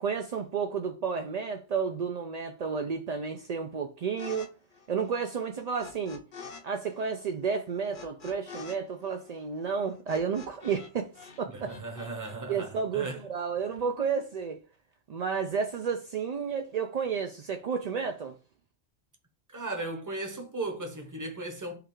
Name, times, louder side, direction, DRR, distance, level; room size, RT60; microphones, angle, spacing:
voice 1, 0.0-4.5 4.9-6.2 6.6-11.7 12.5-14.6 15.1-18.3, right 6 dB, 60° right, 0.4 m, -31 dB
sound 1, 4.2-4.5 4.7-6.6 6.9-10.9 11.2-12.4, left 5 dB, 50° left, 0.8 m, -46 dB
voice 2, 11.5-13.2 19.5-21.8, right 2 dB, 20° right, 0.7 m, -36 dB
5.0 x 2.4 x 4.4 m
omnidirectional pair, 1.2 m